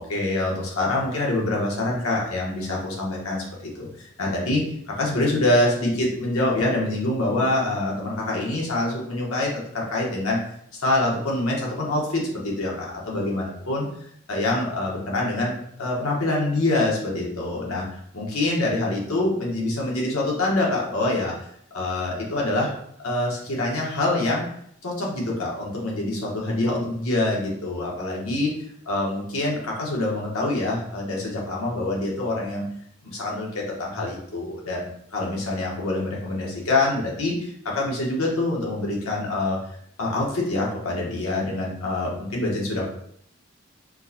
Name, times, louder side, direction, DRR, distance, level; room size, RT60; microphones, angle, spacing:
voice 1, 0.0-10.4 10.7-13.8 14.3-21.3 21.7-22.7 23.0-24.5 24.8-28.5 28.8-32.6 33.0-39.6 40.0-42.8, left 2 dB, 90° left, -3 dB, 1.1 m, -25 dB
4.5 x 2.1 x 2.8 m, 0.67 s
head